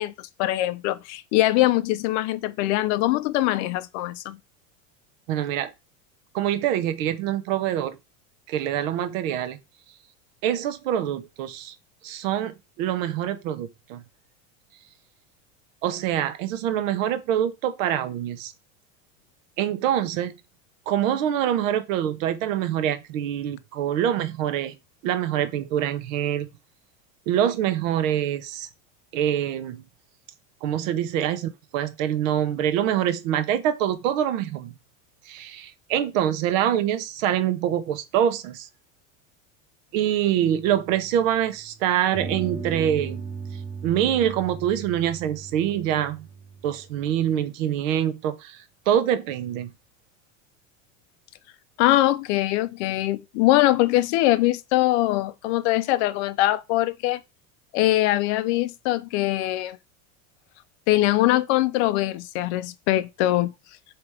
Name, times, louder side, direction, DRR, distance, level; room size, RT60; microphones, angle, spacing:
voice 1, 0.0-4.4 51.8-57.2 57.7-59.8 60.9-63.5, left 16 dB, 55° left, 0.4 m, -22 dB
voice 2, 5.3-5.7 6.3-8.0 8.5-9.6 10.4-11.7 12.0-14.0 15.8-18.5 19.6-20.3 20.9-24.7 25.0-26.5 27.3-28.7 29.1-29.8 30.6-34.7 35.3-38.7 39.9-43.2 43.8-46.3 46.6-49.7, right 10 dB, 75° right, 0.8 m, -25 dB
sound 1, 40.4-41.6 42.1-47.3, right 5 dB, 5° right, 0.4 m, -37 dB
3.4 x 3.0 x 4.7 m
supercardioid pair, 155°, 40 cm